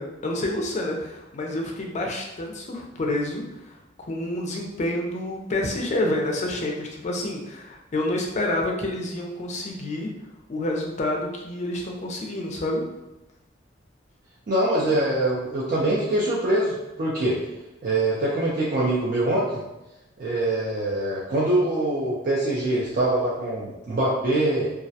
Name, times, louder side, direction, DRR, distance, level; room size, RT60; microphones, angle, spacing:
voice 1, 0.0-3.6 4.0-10.1 10.5-12.8, left 1 dB, 40° left, 0 dB, 0.4 m, -28 dB
voice 2, 14.5-17.4 17.8-19.6 20.2-24.7, right 1 dB, 50° right, -6 dB, 0.4 m, -24 dB
2.3 x 2.1 x 2.6 m, 0.97 s
head